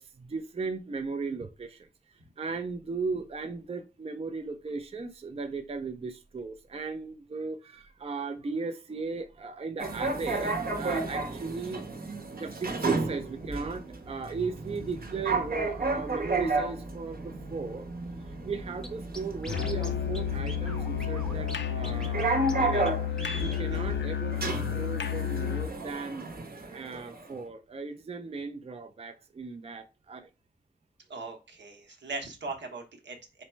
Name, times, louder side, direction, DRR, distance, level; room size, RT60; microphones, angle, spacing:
voice 1, 0.0-1.9 2.4-11.8 12.3-17.9 18.4-22.9 23.4-30.3, right 4 dB, 35° right, 0.4 m, -37 dB
sound 1, 9.8-27.3, right 3 dB, 55° right, 0.9 m, -33 dB
Scratching (performance technique), 18.8-18.9 19.1-19.9 20.1-20.2 20.5-21.6 21.8-22.2 22.5-22.6 22.9-23.0 23.2-23.6, equal, 5° left, 0.7 m, -41 dB
Musical instrument, 19.5-25.8, left 10 dB, 80° left, 0.4 m, -31 dB
voice 2, 31.1-33.4, right 3 dB, 85° right, 0.9 m, -40 dB
4.1 x 2.1 x 4.3 m
wide cardioid pair, 80°, 18 cm